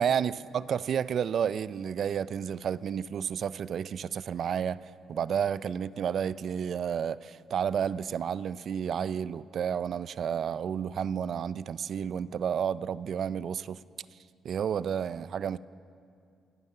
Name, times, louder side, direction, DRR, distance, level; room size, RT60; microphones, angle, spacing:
voice 1, 0.0-4.8 5.1-13.8 14.4-15.6, right 8 dB, 60° right, 18 dB, 0.4 m, -31 dB
26.0 x 9.5 x 5.5 m, 2.4 s
cardioid pair, 90°, 0 cm